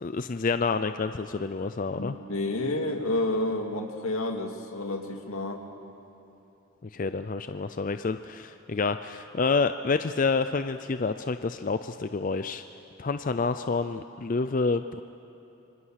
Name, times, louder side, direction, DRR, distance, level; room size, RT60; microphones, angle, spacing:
voice 1, 0.0-2.2 6.9-12.6 13.0-15.0, left 4 dB, 40° left, 10 dB, 0.4 m, -28 dB
voice 2, 2.0-5.6, left 2 dB, 80° left, 4 dB, 2.3 m, -30 dB
26.0 x 24.0 x 6.5 m, 2.9 s
head